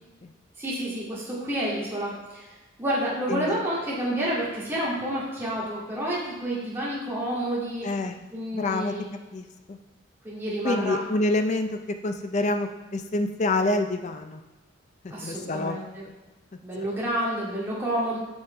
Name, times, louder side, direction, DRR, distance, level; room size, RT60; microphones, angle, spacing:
voice 1, 0.6-2.4 2.8-7.9 8.3-9.1 10.2-11.0 15.1-16.0 16.6-18.2, right 1 dB, 15° right, -8 dB, 2.3 m, -29 dB
voice 2, 7.8-8.2 8.5-8.9 9.3-9.8 10.6-14.4 15.0-15.8 16.8-16.9, left 2 dB, 40° left, 6 dB, 0.5 m, -27 dB
8.5 x 6.3 x 3.3 m, 1.2 s
head